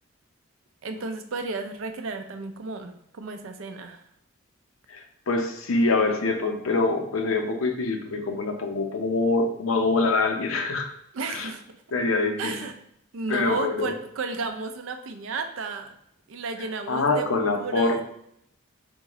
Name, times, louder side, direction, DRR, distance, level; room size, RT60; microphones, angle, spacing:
voice 1, 0.8-4.0 11.1-11.8 12.4-12.7 13.1-15.9 16.3-17.3 17.6-18.0, right 4 dB, 75° right, 7 dB, 0.5 m, -33 dB
voice 2, 4.9-10.9 11.3-11.5 11.9-12.5 13.3-13.9 16.9-18.0, left 3 dB, 85° left, 4 dB, 0.6 m, -25 dB
3.8 x 3.6 x 3.0 m, 0.74 s
head